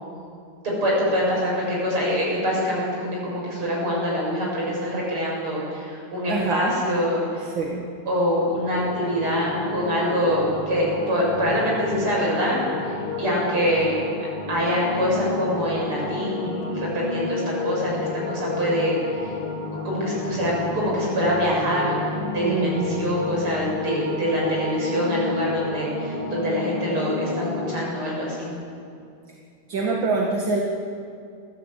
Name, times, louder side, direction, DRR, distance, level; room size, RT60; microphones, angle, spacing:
voice 1, 0.6-7.5 8.1-12.6 13.2-13.9 14.5-18.0 18.3-19.3 19.8-22.0 22.2-28.5, equal, 80° right, -4 dB, 8.7 m, -25 dB
voice 2, 6.3-6.7 7.5-7.9 22.4-23.1 29.7-30.6, right 3 dB, 60° right, 0 dB, 2.5 m, -25 dB
sound 1, 8.4-27.8, left 3 dB, 85° left, 5.2 m, -31 dB
27.0 x 15.0 x 8.3 m, 2.4 s
omnidirectional pair, 2.4 m